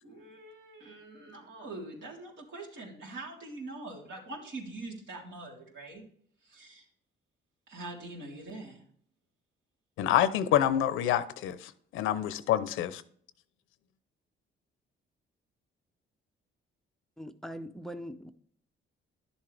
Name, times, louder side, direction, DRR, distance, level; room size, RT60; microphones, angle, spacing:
voice 1, 0.0-6.0 6.4-6.9 7.7-8.8, right 2 dB, 70° right, 3.4 m, -44 dB
voice 2, 10.0-13.0, left 11 dB, 90° left, 0.7 m, -27 dB
voice 3, 17.2-18.3, equal, ahead, 0.6 m, -41 dB
11.0 x 7.2 x 3.4 m
cardioid pair, 90°, 20 cm